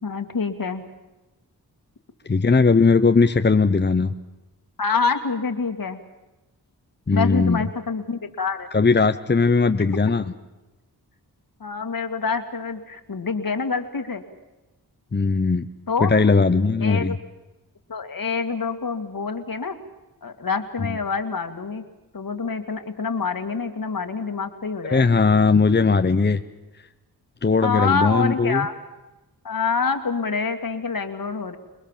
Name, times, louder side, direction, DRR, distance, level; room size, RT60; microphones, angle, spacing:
voice 1, 0.0-0.9 4.8-6.0 7.1-8.7 9.8-9.9 11.6-14.2 15.9-16.1 16.8-17.2 17.9-19.8 20.2-21.8 22.1-25.2 27.6-28.7 29.4-31.6, left 5 dB, 60° left, 7 dB, 2.3 m, -26 dB
voice 2, 2.3-4.1 7.1-7.7 8.7-10.3 15.1-15.7 16.0-17.2 24.9-26.4 27.4-28.7, left 4 dB, 25° left, 8 dB, 0.9 m, -18 dB
27.0 x 20.5 x 7.4 m, 1.1 s
cardioid pair, 60°, 39 cm